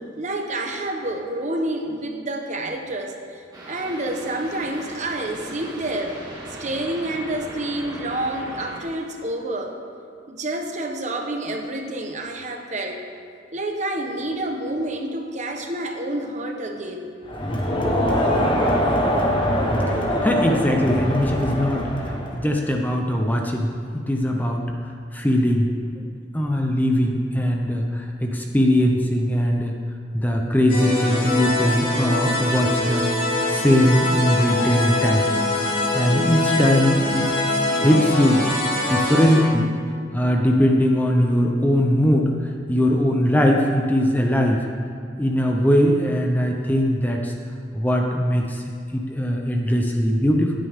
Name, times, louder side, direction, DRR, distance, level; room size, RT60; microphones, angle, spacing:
voice 1, 0.2-6.2 6.6-9.8 10.3-13.0 13.5-17.1, right 1 dB, 40° right, 3 dB, 1.1 m, -28 dB
sound 1, 3.5-8.8, right 1 dB, 20° right, 1.9 m, -38 dB
Crowd, 17.3-22.4, equal, 25° left, 1.3 m, -22 dB
voice 2, 20.2-24.6 25.1-26.1 26.3-29.7 30.1-33.0 33.5-35.4 35.9-37.3 37.8-38.5 38.9-39.7 40.1-42.3 42.7-44.7 45.2-47.3 47.7-48.6 48.9-50.5, equal, 10° left, 1 dB, 0.8 m, -20 dB
sound 2, 30.7-39.4, left 2 dB, 50° left, 3.3 m, -23 dB
16.0 x 9.0 x 3.7 m, 2.3 s
head